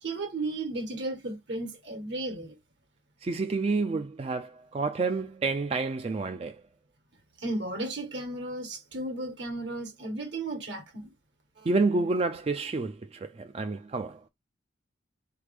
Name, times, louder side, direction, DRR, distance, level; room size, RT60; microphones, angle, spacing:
voice 1, 0.0-2.6 7.4-11.1 11.6-11.7, right 2 dB, 70° right, 1.5 m, -34 dB
voice 2, 3.2-6.6 11.7-14.2, right 3 dB, 30° right, 0.3 m, -29 dB
4.1 x 3.3 x 3.4 m
head